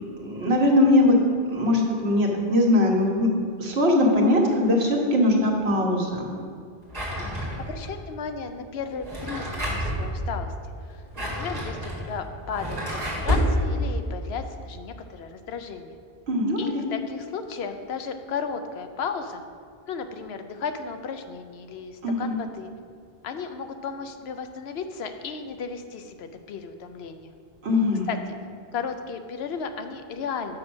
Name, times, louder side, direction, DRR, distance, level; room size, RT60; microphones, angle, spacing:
voice 1, 0.2-1.2 1.5-3.3 3.6-6.3 16.3-16.8 22.0-22.4 27.6-28.1, left 1 dB, 85° right, -1 dB, 1.5 m, -21 dB
Drawer open or close, 6.9-7.9 8.9-10.0 10.9-13.5, equal, 40° right, 2.2 m, -29 dB
voice 2, 7.6-10.5 11.3-16.0 16.6-19.4 19.9-22.7 23.2-27.3 28.1-28.4 28.7-30.6, left 6 dB, 80° left, 8 dB, 0.9 m, -34 dB
6.2 x 6.1 x 6.2 m, 2.3 s
omnidirectional pair, 1.0 m